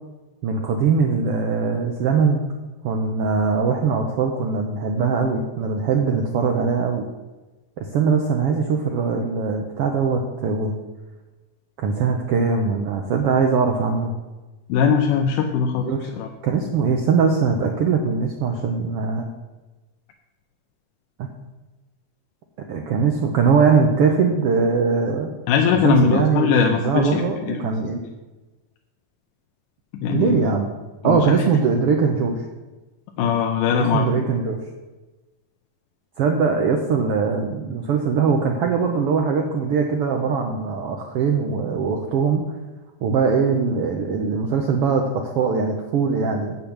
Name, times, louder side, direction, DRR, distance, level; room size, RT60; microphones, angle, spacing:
voice 1, 0.4-2.5 2.8-7.0 7.9-10.7 11.8-14.1 15.8-16.1 16.4-19.3 21.2-21.3 22.7-25.3 25.8-28.0 30.1-30.7 31.0-32.4 33.7-34.6 36.2-42.5 43.0-46.6, right 5 dB, 75° right, 3 dB, 1.4 m, -21 dB
voice 2, 14.7-16.3 25.5-27.7 30.0-30.5 31.0-31.4 33.2-34.2, left 7 dB, 85° left, 3 dB, 2.2 m, -21 dB
8.0 x 6.9 x 7.1 m, 1.2 s
omnidirectional pair, 3.6 m